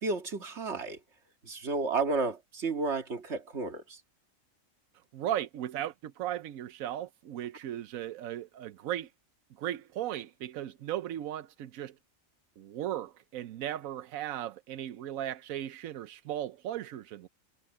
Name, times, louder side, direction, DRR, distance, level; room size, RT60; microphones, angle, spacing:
voice 1, 0.0-1.0 1.4-4.0, right 3 dB, 55° right, 2.2 m, -32 dB
voice 2, 5.1-9.1 9.5-11.9 12.6-17.3, right 11 dB, 85° right, 1.1 m, -36 dB
omnidirectional pair, 1.4 m